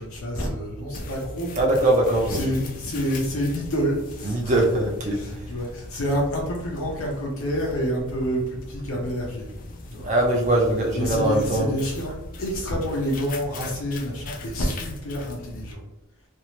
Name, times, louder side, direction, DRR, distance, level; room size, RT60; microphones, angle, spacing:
voice 1, 0.0-1.7 2.3-4.5 5.1-9.5 9.9-10.1 10.9-15.8, equal, 85° left, -2 dB, 0.6 m, -28 dB
sound 1, 0.9-15.7, left 2 dB, 40° left, 0.3 m, -40 dB
voice 2, 1.6-2.4 4.2-5.4 10.0-11.7, right 1 dB, 35° right, 0 dB, 0.4 m, -22 dB
2.6 x 2.0 x 2.9 m, 0.96 s
head